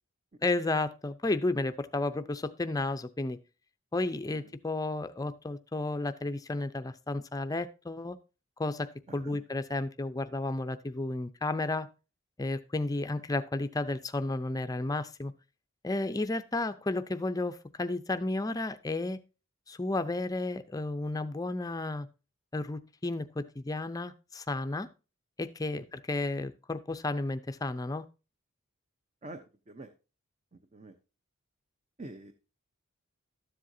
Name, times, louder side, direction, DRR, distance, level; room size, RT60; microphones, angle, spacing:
voice 1, 0.4-3.4 3.9-8.2 8.6-11.9 12.4-15.3 15.8-19.2 19.7-22.1 22.5-24.9 25.4-28.1, left 2 dB, 15° left, 10 dB, 0.5 m, -32 dB
voice 2, 9.1-9.4 25.8-25.9 29.2-29.9 30.5-31.0 32.0-32.3, right 2 dB, 30° right, 8 dB, 0.7 m, -46 dB
13.0 x 7.6 x 2.7 m, 0.31 s
head